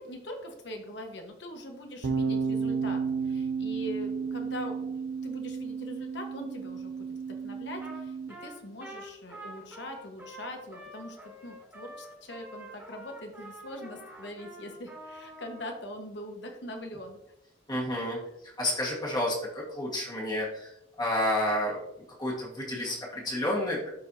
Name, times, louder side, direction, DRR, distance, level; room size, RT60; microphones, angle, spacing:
voice 1, 0.0-17.2, left 1 dB, 60° left, 3 dB, 1.3 m, -42 dB
sound 1, 2.0-8.3, right 5 dB, 80° right, 0.6 m, -32 dB
Trumpet, 7.8-8.0 8.3-15.7, right 1 dB, 10° right, 1.8 m, -46 dB
voice 2, 17.7-20.7 21.0-21.8 22.2-23.9, left 1 dB, 20° left, -4 dB, 1.6 m, -30 dB
12.0 x 4.6 x 2.8 m, 0.84 s
head